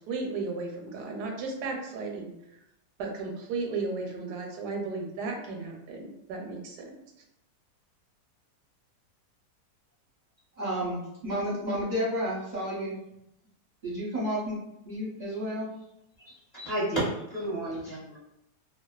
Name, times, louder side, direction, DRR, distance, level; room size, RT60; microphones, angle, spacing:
voice 1, 0.1-2.3 3.0-7.0, right 3 dB, 80° right, 1 dB, 1.1 m, -34 dB
voice 2, 10.6-13.0 13.8-14.6 14.9-15.7, equal, 40° right, -7 dB, 0.7 m, -31 dB
voice 3, 16.2-18.2, right 1 dB, 30° left, -10 dB, 0.8 m, -32 dB
2.6 x 2.3 x 2.3 m, 0.84 s
omnidirectional pair, 1.7 m